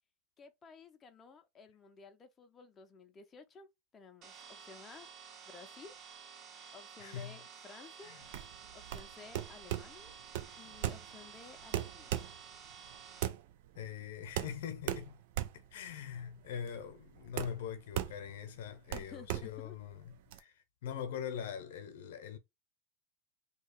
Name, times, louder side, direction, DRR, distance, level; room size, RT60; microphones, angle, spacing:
voice 1, 0.4-5.1 5.4-5.9 6.7-8.1 8.5-10.1 10.6-12.2 18.9-19.8, left 5 dB, 25° left, 0.6 m, -54 dB
sound 1, 4.2-13.3, right 7 dB, 45° right, 0.8 m, -52 dB
voice 2, 7.0-7.4 8.0-8.2 13.7-15.2 15.5-22.4, left 8 dB, 75° left, 0.8 m, -43 dB
sound 2, 8.2-20.4, right 12 dB, 70° right, 0.5 m, -39 dB
2.8 x 2.3 x 4.2 m
hypercardioid pair, 110°, 0 cm